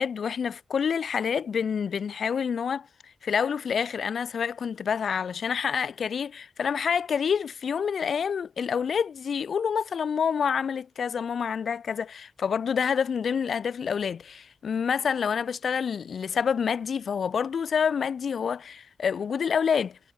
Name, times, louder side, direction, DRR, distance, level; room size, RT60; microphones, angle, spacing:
voice 1, 0.0-2.9 3.2-20.0, left 7 dB, 70° left, 4.2 m, -27 dB
wide cardioid pair, 100°, 0 cm